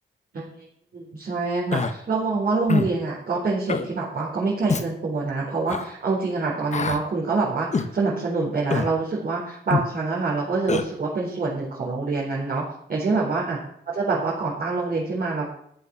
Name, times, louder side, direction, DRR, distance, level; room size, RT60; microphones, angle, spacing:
voice 1, 0.9-13.6 14.0-15.5, right 3 dB, 50° right, -7 dB, 4.2 m, -26 dB
Human voice, 1.7-1.9 2.7-2.9 3.7-3.9 4.7-4.9 5.7-5.8 6.7-7.0 7.7-7.9 8.7-8.9 9.7-9.9 10.7-10.9, left 5 dB, 35° left, 1.1 m, -24 dB
13.5 x 10.5 x 6.2 m, 0.69 s
wide cardioid pair, 150°, 20 cm